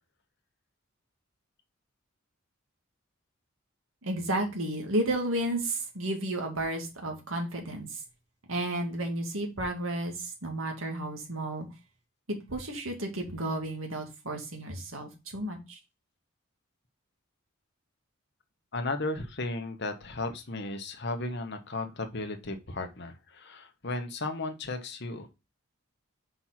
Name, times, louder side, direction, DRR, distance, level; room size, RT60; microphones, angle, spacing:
voice 1, 4.0-8.0 8.5-11.7 12.3-15.8, right 1 dB, 75° right, 3 dB, 2.2 m, -32 dB
voice 2, 18.7-25.3, left 2 dB, 55° left, 6 dB, 1.2 m, -35 dB
5.4 x 4.6 x 5.8 m, 0.26 s
head